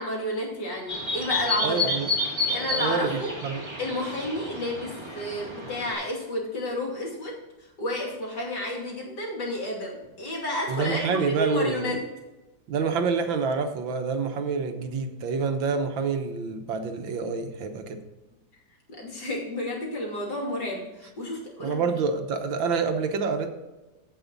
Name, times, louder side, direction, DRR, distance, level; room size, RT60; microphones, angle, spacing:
voice 1, 0.0-2.0 2.4-3.3 3.8-7.3 7.8-12.0 18.9-21.8, left 1 dB, 60° left, -1 dB, 3.2 m, -31 dB
sound 1, 0.9-5.9, left 2 dB, 15° right, 2.1 m, -30 dB
voice 2, 1.6-2.1 2.7-3.6 10.7-11.9 12.7-18.0 21.6-23.5, right 5 dB, 90° right, 6 dB, 1.8 m, -27 dB
15.0 x 5.5 x 4.0 m, 1.1 s
omnidirectional pair, 2.0 m